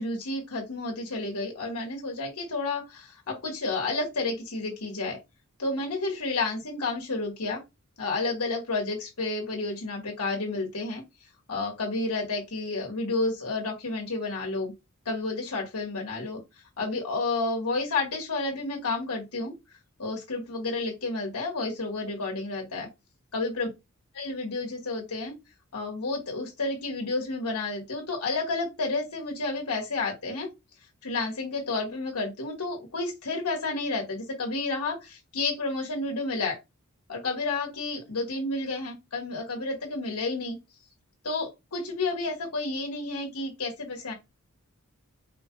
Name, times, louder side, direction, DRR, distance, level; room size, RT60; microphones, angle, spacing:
voice 1, 0.0-5.2 5.6-7.6 8.0-11.0 11.5-14.7 15.1-16.4 16.8-19.5 20.0-22.9 23.3-23.7 24.2-25.4 25.7-30.5 31.0-36.6 37.1-40.6 41.2-44.1, left 3 dB, 85° left, 1.6 m, -31 dB
4.9 x 2.3 x 4.6 m
head